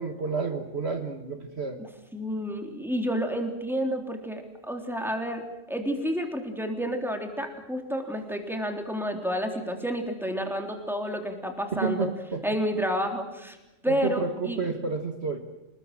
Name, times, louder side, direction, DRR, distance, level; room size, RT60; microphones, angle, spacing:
voice 1, 0.0-1.8 11.7-12.4 13.9-15.4, right 4 dB, 55° right, 5 dB, 1.8 m, -30 dB
voice 2, 2.1-5.4 5.7-12.1 12.4-13.6 13.8-14.7, equal, ahead, 3 dB, 3.4 m, -30 dB
27.5 x 20.5 x 7.7 m, 1.0 s
omnidirectional pair, 1.3 m